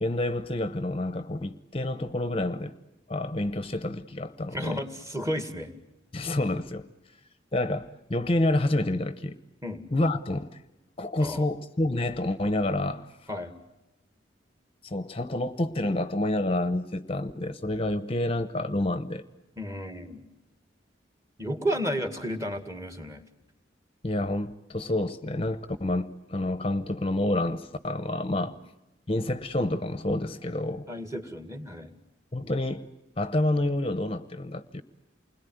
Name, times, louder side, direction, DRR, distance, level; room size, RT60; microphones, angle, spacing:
voice 1, 0.0-2.7 3.1-4.8 6.1-6.8 7.5-9.4 9.9-10.6 11.0-13.3 14.8-19.2 24.0-28.6 29.1-30.9 32.3-32.9 33.2-34.8, left 1 dB, 30° left, 0.9 m, -28 dB
voice 2, 4.5-5.8 9.6-9.8 11.2-11.5 13.3-13.5 19.6-20.2 21.4-23.2 28.3-28.5 30.9-32.0, equal, 15° right, 2.1 m, -33 dB
29.0 x 21.5 x 9.4 m
head